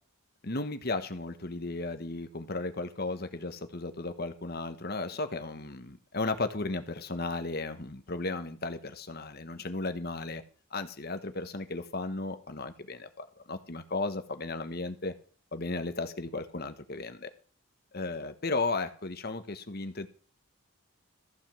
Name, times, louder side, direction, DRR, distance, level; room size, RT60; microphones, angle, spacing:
voice 1, 0.4-10.4 10.7-15.1 15.5-17.3 17.9-20.1, left 3 dB, 45° left, 9 dB, 1.3 m, -35 dB
14.5 x 5.3 x 7.6 m, 0.41 s
head